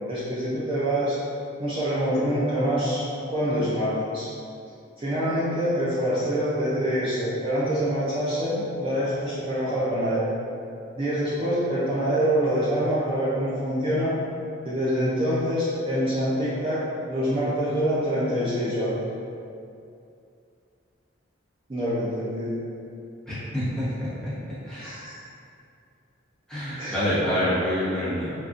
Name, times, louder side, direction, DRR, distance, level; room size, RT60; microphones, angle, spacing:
voice 1, 0.1-1.2 1.6-4.3 5.0-10.3 11.0-14.2 14.6-19.0 21.7-22.6 24.8-25.1 26.8-27.0, equal, 25° right, -10 dB, 0.4 m, -25 dB
voice 2, 23.3-23.8 24.2-24.3 24.6-24.9 26.5-28.3, equal, 5° left, -12 dB, 0.9 m, -26 dB
3.5 x 2.3 x 2.5 m, 2.5 s
head